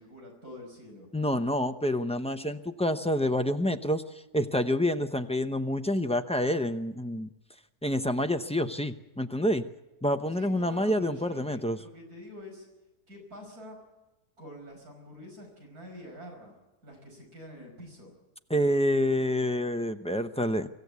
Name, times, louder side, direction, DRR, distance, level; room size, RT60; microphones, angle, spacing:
voice 1, 0.0-1.1 10.3-12.7 13.1-13.8 14.4-16.6 16.8-18.1, left 1 dB, 75° right, 2 dB, 5.9 m, -47 dB
voice 2, 1.1-4.0 4.3-7.3 7.8-9.7 10.0-11.8 18.5-20.7, left 1 dB, 10° left, 7 dB, 0.3 m, -27 dB
24.5 x 14.5 x 8.2 m, 1.1 s
omnidirectional pair, 1.6 m